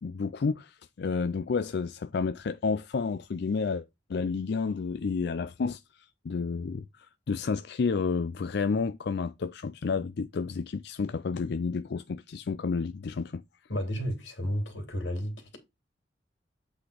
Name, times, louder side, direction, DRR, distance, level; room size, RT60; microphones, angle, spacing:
voice 1, 0.0-5.8 6.2-6.9 7.3-13.4, left 4 dB, 65° left, 0.4 m, -30 dB
voice 2, 13.7-15.6, equal, 90° left, 2.8 m, -32 dB
8.3 x 4.0 x 4.9 m
head